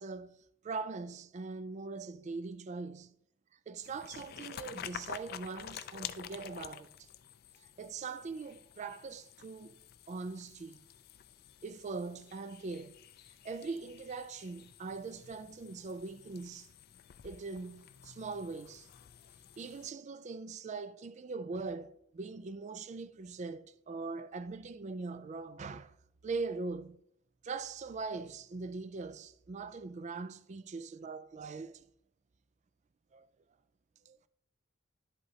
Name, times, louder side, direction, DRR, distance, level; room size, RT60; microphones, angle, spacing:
voice 1, 0.0-3.2 3.7-7.1 7.8-9.8 10.1-10.8 11.6-13.0 13.4-16.7 17.2-18.9 19.6-25.9 26.2-27.0 27.4-31.8 33.1-33.3 34.1-34.3, right 4 dB, 35° right, 0.3 m, -41 dB
sound 1, 3.8-19.9, left 9 dB, 50° left, 0.4 m, -50 dB
11.5 x 8.0 x 2.8 m
head